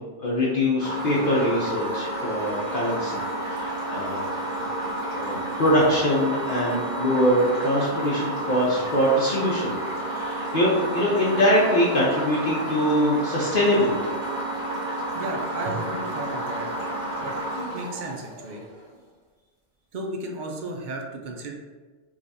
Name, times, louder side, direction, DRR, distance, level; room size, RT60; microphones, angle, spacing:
voice 1, 0.0-3.2 3.5-4.2 5.1-14.1, equal, 55° left, -5 dB, 0.7 m, -23 dB
sound 1, 0.8-18.8, right 1 dB, 40° right, 1.1 m, -31 dB
voice 2, 15.2-16.7 17.2-17.3 17.7-18.6 19.9-21.5, right 1 dB, 60° right, 2 dB, 0.5 m, -33 dB
4.8 x 2.4 x 2.6 m, 1.4 s
omnidirectional pair, 1.2 m